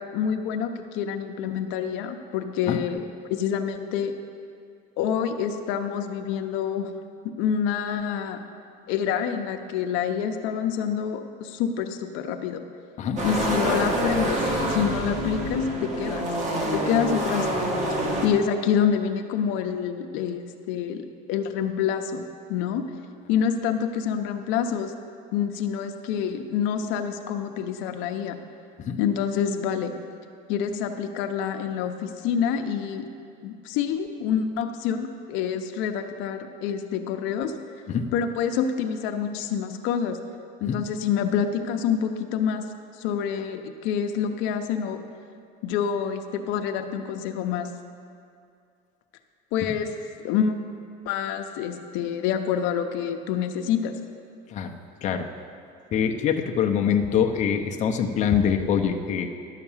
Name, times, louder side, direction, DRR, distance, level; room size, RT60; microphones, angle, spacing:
voice 1, 0.0-3.0 3.3-4.1 5.0-6.9 7.4-8.4 8.9-12.6 13.2-14.4 14.7-16.3 16.7-17.5 18.2-22.2 22.5-22.8 23.3-24.9 25.3-28.4 29.0-29.9 30.5-33.1 33.4-37.5 38.1-40.2 40.6-42.7 43.0-45.0 45.6-47.7 49.5-49.9 50.2-50.5 51.1-54.0, left 8 dB, 70° left, 6 dB, 0.7 m, -27 dB
sound 1, 13.2-18.3, right 1 dB, 35° right, 1.6 m, -26 dB
voice 2, 55.9-59.3, left 7 dB, 35° left, 3 dB, 0.7 m, -24 dB
11.5 x 5.8 x 7.2 m, 2.4 s
cardioid pair, 145°, 21 cm